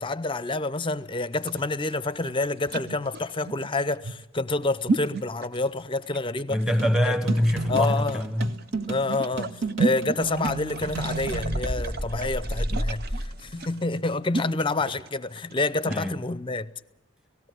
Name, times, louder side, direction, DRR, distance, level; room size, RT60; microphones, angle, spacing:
voice 1, 0.0-6.6 7.7-8.2 8.9-16.7, left 2 dB, 25° left, 0.7 m, -28 dB
sound 1, 1.3-16.1, right 4 dB, 50° right, 0.8 m, -33 dB
voice 2, 6.5-8.5 15.9-16.2, equal, ahead, 1.3 m, -24 dB
sound 2, 6.8-11.8, right 4 dB, 65° right, 1.9 m, -34 dB
sound 3, 10.8-13.6, equal, 35° right, 1.6 m, -31 dB
18.5 x 16.0 x 9.4 m
head